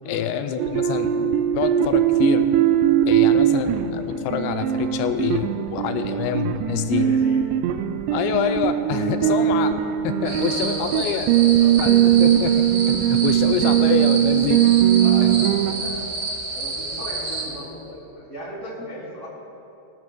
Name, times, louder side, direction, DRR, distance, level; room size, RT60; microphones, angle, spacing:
voice 1, 0.1-1.3 1.6-2.4 3.1-7.1 8.1-9.7 10.0-11.3 11.8-14.6, left 9 dB, 85° left, 7 dB, 2.8 m, -26 dB
sound 1, 0.6-15.7, right 10 dB, 85° right, 2.8 m, -20 dB
voice 2, 3.1-3.5 6.8-7.4 9.2-9.7 10.2-12.1 15.0-16.2 16.5-19.3, equal, 35° right, -6 dB, 1.2 m, -37 dB
sound 2, 10.2-17.5, right 3 dB, 65° right, 3.8 m, -30 dB
19.5 x 12.5 x 2.2 m, 2.8 s
omnidirectional pair, 5.1 m